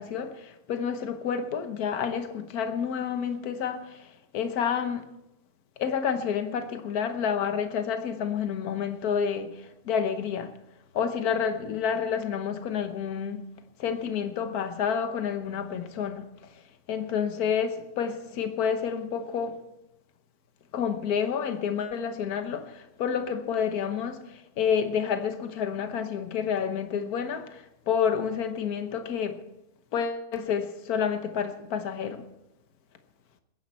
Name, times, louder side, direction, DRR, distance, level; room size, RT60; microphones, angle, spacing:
voice 1, 0.0-5.0 5.8-10.6 10.9-13.5 13.8-16.6 16.9-19.6 20.7-29.4 29.9-32.3, left 7 dB, 70° left, 1.6 m, -29 dB
21.5 x 10.5 x 4.3 m
omnidirectional pair, 1.7 m